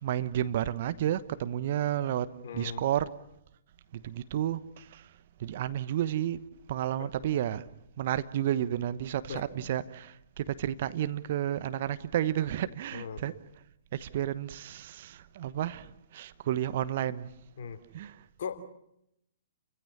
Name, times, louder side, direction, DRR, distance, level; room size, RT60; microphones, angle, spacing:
voice 1, 0.0-2.3 2.5-3.1 3.9-5.0 5.4-7.7 8.0-13.3 13.9-17.3 17.9-18.2, right 11 dB, 50° right, 1.1 m, -31 dB
voice 2, 2.4-2.8 7.0-7.1 9.3-9.7 12.9-13.2 17.6-17.8 18.4-18.6, left 6 dB, 55° left, 3.0 m, -39 dB
30.0 x 15.5 x 9.7 m
figure-of-eight pair, 120°, 0 cm